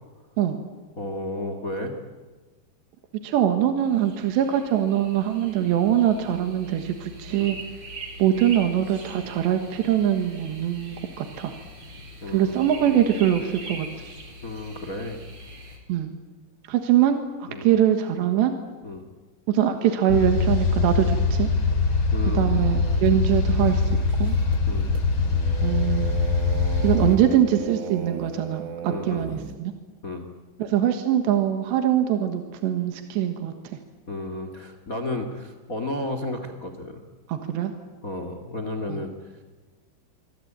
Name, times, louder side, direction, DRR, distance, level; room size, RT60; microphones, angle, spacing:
voice 1, 1.0-1.9 7.4-7.5 12.2-12.5 12.8-12.9 14.4-15.2 17.5-17.7 18.8-19.1 22.1-22.5 24.7-24.9 28.9-29.2 30.0-30.3 34.1-37.0 38.0-39.3, left 2 dB, 65° left, 7 dB, 0.8 m, -32 dB
voice 2, 3.2-7.6 8.2-11.5 12.3-13.9 15.9-16.1 16.7-18.5 19.5-21.5 22.4-24.4 25.6-26.2 26.8-29.7 30.6-33.8 37.3-37.7 38.9-39.0, right 10 dB, 70° right, 6 dB, 3.6 m, -23 dB
sound 1, 3.8-15.8, right 1 dB, 35° right, 4.6 m, -42 dB
sound 2, 20.1-27.2, left 4 dB, 30° left, 2.8 m, -23 dB
sound 3, 22.5-29.6, right 9 dB, 90° right, 4.2 m, -38 dB
25.5 x 25.0 x 8.9 m, 1.4 s
omnidirectional pair, 5.4 m